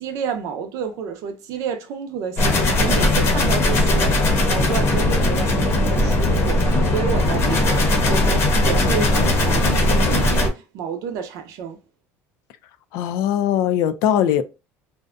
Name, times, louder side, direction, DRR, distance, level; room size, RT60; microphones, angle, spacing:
voice 1, 0.0-11.8, right 6 dB, 65° right, 0.6 m, -30 dB
sound 1, 2.4-10.5, left 1 dB, 45° left, 0.7 m, -18 dB
voice 2, 12.9-14.4, left 10 dB, 70° left, 0.3 m, -20 dB
2.6 x 2.1 x 2.4 m
cardioid pair, 135°, 6 cm